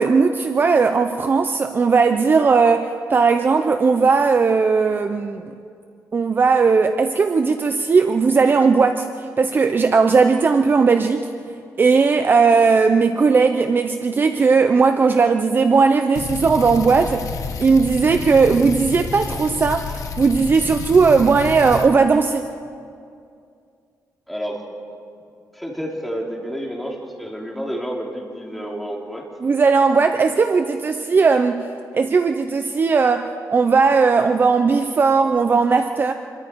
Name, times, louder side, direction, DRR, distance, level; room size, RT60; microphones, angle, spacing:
voice 1, 0.0-5.5 6.1-11.3 11.8-17.3 17.6-22.5 29.4-31.6 31.9-36.1, right 4 dB, 35° right, 7 dB, 0.7 m, -17 dB
sound 1, 16.2-21.9, left 5 dB, 60° left, 1.3 m, -30 dB
voice 2, 24.3-24.6 25.5-29.2, equal, ahead, -2 dB, 3.5 m, -29 dB
27.0 x 22.5 x 4.7 m, 2.4 s
cardioid pair, 130°, 6 cm